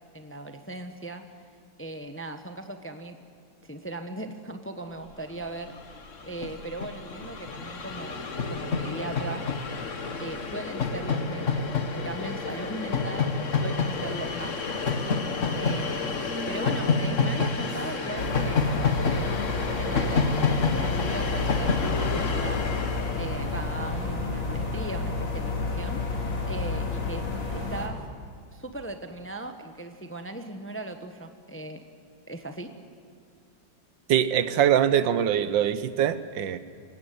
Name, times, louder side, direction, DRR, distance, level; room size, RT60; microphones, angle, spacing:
voice 1, 0.1-1.2 1.8-3.2 3.6-5.8 6.2-9.4 10.2-13.3 13.6-14.5 15.6-22.6 23.2-26.0 26.5-28.0 28.5-31.8 32.3-32.7, right 2 dB, 10° left, 7 dB, 0.9 m, -38 dB
Train, 5.4-5.5 5.7-24.1, left 4 dB, 45° left, 1.6 m, -29 dB
sound 1, 18.2-27.9, left 3 dB, 85° left, 3.7 m, -30 dB
voice 2, 34.1-36.6, right 9 dB, 80° right, 13 dB, 1.6 m, -23 dB
24.0 x 17.5 x 9.4 m, 2.2 s
omnidirectional pair, 2.0 m